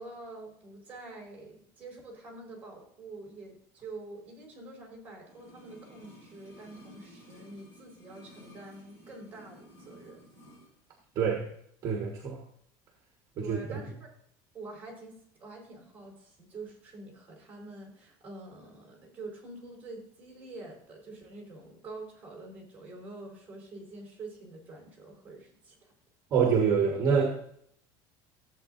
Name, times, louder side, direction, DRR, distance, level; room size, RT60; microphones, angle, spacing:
voice 1, 0.0-10.2 13.4-14.1 14.5-25.9, right 2 dB, 15° right, -2 dB, 4.4 m, -46 dB
sound 1, 5.2-10.7 11.0-11.1, equal, 25° left, 4.9 m, -54 dB
voice 2, 11.1-11.5 11.8-12.4 13.4-13.8 26.3-27.4, right 6 dB, 35° right, 1 dB, 1.5 m, -26 dB
14.5 x 8.1 x 2.7 m, 0.66 s
cardioid pair, 160°, 10 cm